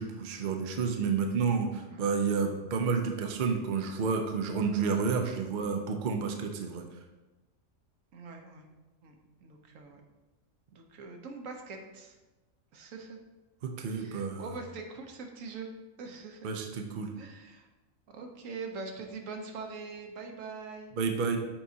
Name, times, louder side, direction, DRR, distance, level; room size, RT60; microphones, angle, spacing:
voice 1, 0.0-6.8 13.6-14.4 16.4-17.1 21.0-21.4, right 5 dB, 50° right, 4 dB, 0.6 m, -30 dB
voice 2, 8.1-8.7 9.0-9.1 9.4-10.0 10.7-12.2 12.7-13.2 13.8-15.7 16.0-16.5 17.2-17.7 18.1-20.9, right 4 dB, 75° right, 3 dB, 1.2 m, -43 dB
7.2 x 4.7 x 2.8 m, 1.1 s
omnidirectional pair, 1.4 m